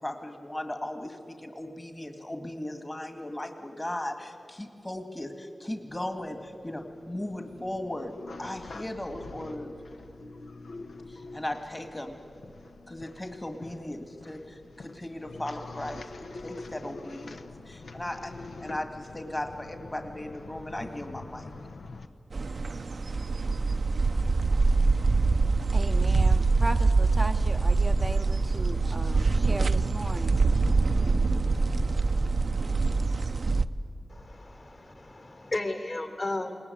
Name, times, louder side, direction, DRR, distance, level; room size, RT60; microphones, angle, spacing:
voice 1, 0.0-9.7 11.1-12.2 12.9-18.3 18.6-21.5, left 1 dB, 25° left, 1.8 m, -37 dB
sound 1, 5.9-22.1, left 3 dB, 80° left, 1.0 m, -45 dB
sound 2, 22.3-33.7, right 3 dB, 65° right, 0.6 m, -24 dB
voice 2, 25.7-30.4, right 1 dB, 25° right, 0.6 m, -36 dB
voice 3, 34.1-36.5, left 2 dB, 55° left, 3.7 m, -34 dB
22.0 x 18.5 x 9.5 m
cardioid pair, 40°, 0 cm